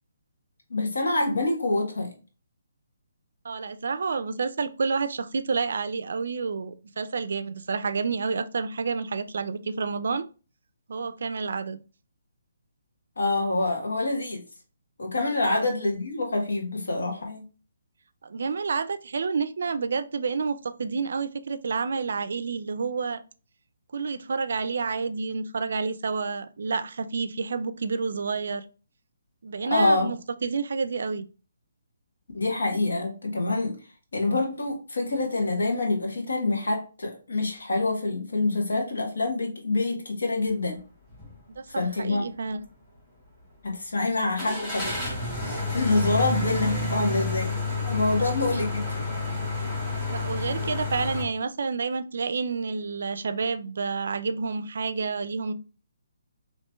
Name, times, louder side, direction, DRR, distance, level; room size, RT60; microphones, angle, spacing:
voice 1, 0.7-2.1 13.2-14.4 15.0-17.4 29.7-30.1 32.3-33.7 34.1-40.8 41.7-42.2 43.6-45.0 45.7-47.5 47.8-48.8, left 2 dB, 85° left, 1.2 m, -26 dB
voice 2, 3.4-10.2 10.9-11.8 15.5-15.7 18.2-23.2 23.9-28.6 29.4-31.3 41.5-42.6 48.2-48.5 50.1-55.5, right 4 dB, 70° right, 0.3 m, -29 dB
sound 1, 41.1-41.3 41.8-41.9 44.4-51.2, left 3 dB, 10° left, 1.5 m, -30 dB
4.3 x 2.8 x 2.2 m
hypercardioid pair, 160°, 0 cm